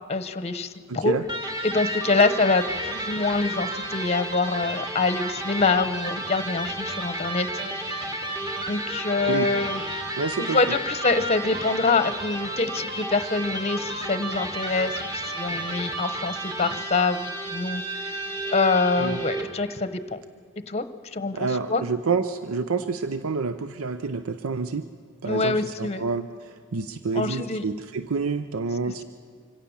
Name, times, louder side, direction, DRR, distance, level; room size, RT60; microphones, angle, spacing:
voice 1, 0.1-1.1 1.6-7.5 7.9-8.1 8.7-9.8 10.4-18.0 18.5-20.2 20.7-20.8 21.1-21.8 25.2-26.0 27.1-27.6, left 3 dB, 30° left, 11 dB, 0.9 m, -25 dB
voice 2, 0.9-1.2 9.3-9.5 10.2-10.8 19.0-19.2 21.3-24.9 25.2-29.0, right 4 dB, 85° right, 11 dB, 0.7 m, -28 dB
Electric guitar, 1.2-19.6, right 1 dB, 20° right, 2.3 m, -32 dB
25.0 x 17.0 x 7.1 m, 2.1 s
head